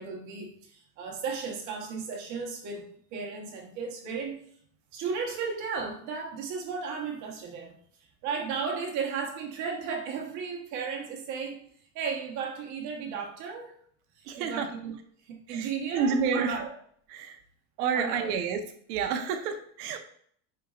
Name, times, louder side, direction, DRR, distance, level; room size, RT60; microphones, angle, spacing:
voice 1, 0.0-2.8 3.1-4.4 4.9-7.8 8.2-11.6 11.9-13.7 14.2-14.9 15.2-16.7 17.9-18.4, right 5 dB, 35° right, 1 dB, 1.3 m, -34 dB
voice 2, 14.2-14.7 15.5-16.6 17.1-17.4 17.8-18.6 18.9-20.0, right 6 dB, 65° right, 6 dB, 1.2 m, -29 dB
10.5 x 4.5 x 2.5 m, 0.62 s
supercardioid pair, 180°, 50 cm